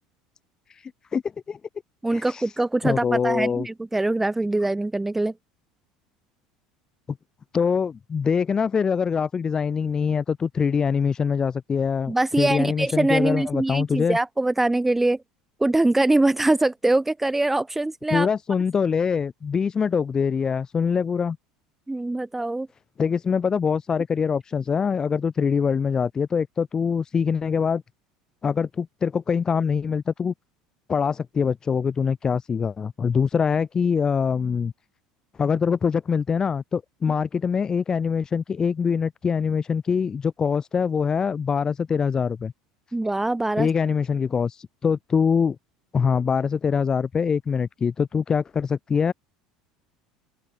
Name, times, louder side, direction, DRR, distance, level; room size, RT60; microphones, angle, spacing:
voice 1, 0.7-1.2 1.5-1.6 2.1-2.5 2.8-3.7 7.1-7.2 7.5-14.2 18.1-21.4 23.0-27.8 28.4-30.3 30.9-34.7 35.4-42.5 43.6-45.6 45.9-49.1, left 6 dB, 30° left, 5.9 m, -24 dB
voice 2, 2.0-5.3 12.1-15.2 15.6-18.3 21.9-22.7 42.9-43.7, right 2 dB, 10° right, 1.4 m, -23 dB
open air
hypercardioid pair, 80°, 2 cm